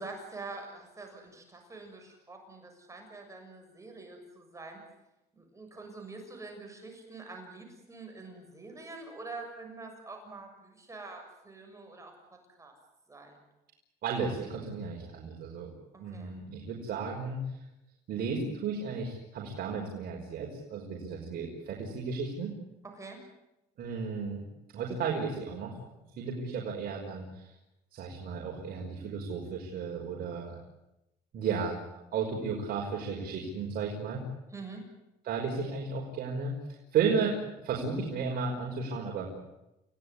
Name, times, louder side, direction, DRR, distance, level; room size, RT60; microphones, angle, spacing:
voice 1, 0.0-4.8 5.3-12.1 12.6-12.7 13.1-13.4 16.1-16.3 22.9-23.2 34.5-34.8, right 3 dB, 20° right, 3 dB, 7.1 m, -45 dB
voice 2, 14.0-15.7 16.0-17.4 18.1-22.5 23.8-24.4 24.7-25.7 26.2-27.5 27.9-30.5 31.3-31.8 32.1-34.2 35.2-36.5 36.9-39.3, right 5 dB, 65° right, 0 dB, 5.5 m, -33 dB
29.5 x 17.5 x 9.9 m, 0.93 s
cardioid pair, 110°, 17 cm